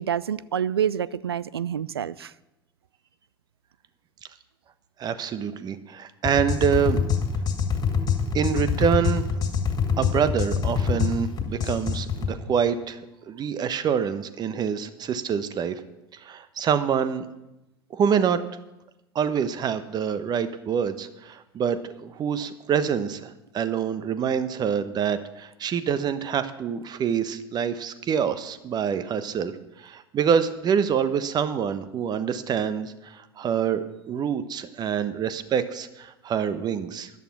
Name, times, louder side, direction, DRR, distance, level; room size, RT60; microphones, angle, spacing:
voice 1, 0.0-2.3, right 9 dB, 80° right, 21 dB, 0.4 m, -27 dB
voice 2, 5.0-7.0 8.3-9.2 10.0-13.0 13.3-15.8 16.1-17.2 17.9-18.4 19.1-29.5 29.8-37.1, right 7 dB, 35° right, 13 dB, 1.1 m, -26 dB
sound 1, 6.2-12.3, left 6 dB, 30° left, 2.3 m, -25 dB
14.0 x 11.0 x 6.0 m, 0.94 s
figure-of-eight pair, 75°, 13 cm